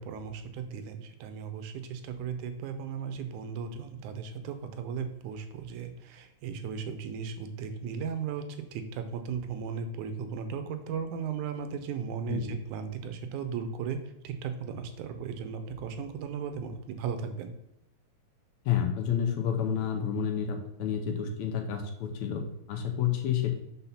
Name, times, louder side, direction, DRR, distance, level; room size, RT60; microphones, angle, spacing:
voice 1, 0.0-14.0 14.2-17.5, right 6 dB, 85° right, 8 dB, 2.1 m, -36 dB
voice 2, 18.7-23.5, left 8 dB, 75° left, 4 dB, 2.0 m, -30 dB
5.6 x 4.2 x 5.7 m, 0.82 s
omnidirectional pair, 3.5 m